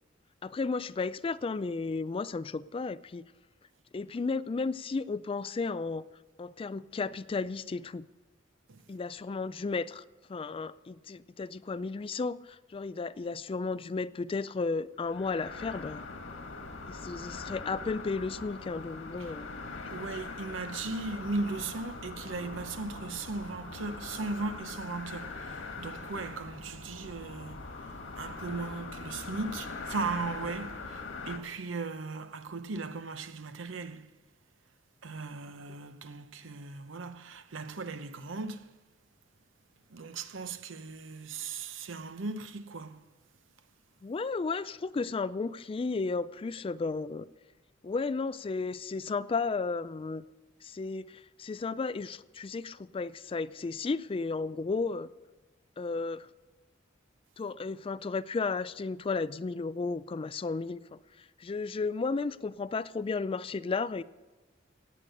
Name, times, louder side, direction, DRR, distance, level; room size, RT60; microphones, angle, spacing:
voice 1, 0.4-3.2 3.9-6.0 6.4-8.1 8.9-10.0 10.3-16.1 16.9-19.5 44.0-47.3 47.8-50.2 50.6-55.1 55.8-56.3 57.4-61.0 61.4-64.0, left 4 dB, 30° left, 0.3 m, -33 dB
sound 1, 15.0-31.4, left 3 dB, 85° left, 1.6 m, -42 dB
voice 2, 19.9-34.2 35.0-38.7 39.9-43.1, right 3 dB, 75° right, 0.8 m, -37 dB
17.0 x 8.4 x 6.6 m
head